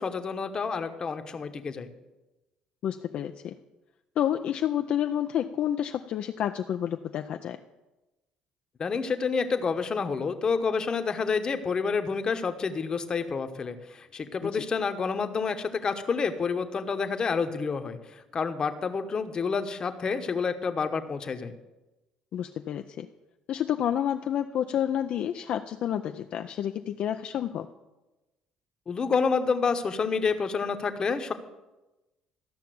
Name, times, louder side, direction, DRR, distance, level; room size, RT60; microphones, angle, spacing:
voice 1, 0.0-1.9 8.8-18.0 18.3-21.5 28.9-31.3, left 5 dB, 35° left, 8 dB, 1.0 m, -28 dB
voice 2, 2.8-3.5 4.2-7.6 14.4-14.6 22.3-23.1 23.5-27.7, left 10 dB, 60° left, 6 dB, 0.5 m, -29 dB
13.5 x 5.8 x 7.7 m, 1.1 s
cardioid pair, 95°, 2 cm